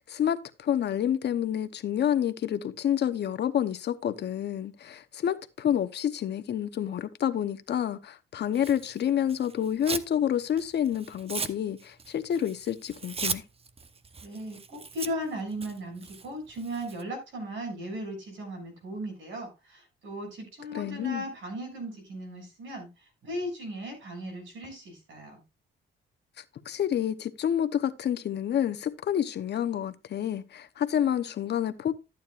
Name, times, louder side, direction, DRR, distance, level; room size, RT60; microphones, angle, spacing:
voice 1, 0.1-13.4 20.7-21.2 26.6-31.9, left 9 dB, 60° left, 0.9 m, -28 dB
Tearing, 8.5-10.1 10.5-17.0, right 4 dB, 30° right, 0.9 m, -38 dB
voice 2, 14.2-25.4, equal, 70° right, 6.6 m, -37 dB
13.5 x 9.2 x 2.5 m
cardioid pair, 90°, 20 cm